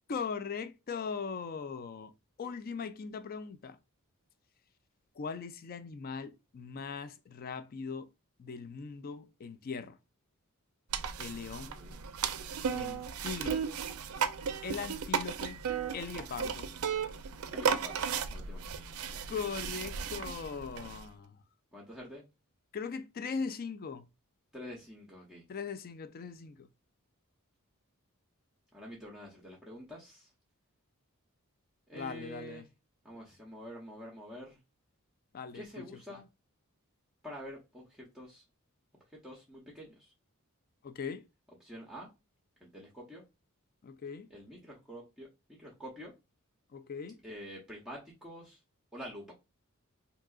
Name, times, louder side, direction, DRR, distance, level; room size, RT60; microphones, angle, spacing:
voice 1, 0.1-2.1 2.4-3.8 5.2-8.1 8.4-10.0 11.2-11.8 12.7-13.6 14.6-15.6 15.9-16.7 19.3-21.4 22.7-24.0 25.5-26.7 31.9-32.6 35.3-35.8 40.8-41.3 43.8-44.3 46.7-47.2, left 5 dB, 40° left, 0.4 m, -40 dB
sound 1, 10.9-21.0, right 6 dB, 75° right, 0.4 m, -35 dB
voice 2, 17.5-18.8 21.7-22.3 24.5-25.4 28.7-30.3 31.9-32.7 33.0-34.6 35.5-36.2 37.2-38.4 39.1-40.1 41.6-42.1 42.6-43.2 44.3-46.1 47.2-48.6 48.9-49.3, equal, 5° right, 0.6 m, -47 dB
3.6 x 2.8 x 2.3 m
head